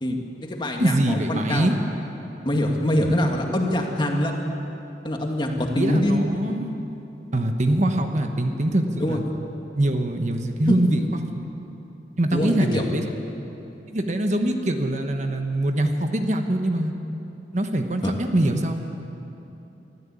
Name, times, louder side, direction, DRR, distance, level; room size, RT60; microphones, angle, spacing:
voice 1, 0.0-1.7 2.4-4.5 5.0-6.2 9.0-9.2 10.7-10.8 12.3-12.8 18.0-18.1, left 1 dB, 25° left, 1 dB, 2.2 m, -24 dB
voice 2, 0.8-1.8 5.8-6.7 7.3-9.2 9.8-11.3 12.2-13.1 13.9-16.9 17.5-18.7, right 1 dB, 40° right, 5 dB, 1.2 m, -23 dB
24.0 x 14.0 x 8.5 m, 3.0 s
head